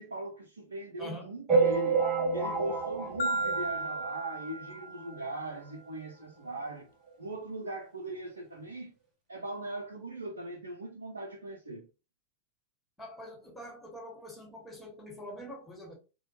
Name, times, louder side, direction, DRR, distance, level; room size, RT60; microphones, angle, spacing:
voice 1, 0.0-2.0 2.3-6.9 7.2-8.9 9.3-11.9, right 2 dB, 70° right, 0.5 m, -40 dB
voice 2, 1.0-1.3 13.0-15.9, equal, 5° left, 1.5 m, -44 dB
sound 1, 1.5-4.3 4.8-4.9 5.1-5.3 5.5-5.6 6.5-6.6 7.1-7.2, right 4 dB, 25° right, 1.1 m, -29 dB
Marimba xylophone, 3.2-5.4, right 2 dB, 65° left, 0.4 m, -34 dB
4.3 x 2.3 x 2.9 m
figure-of-eight pair, 90°, 0 cm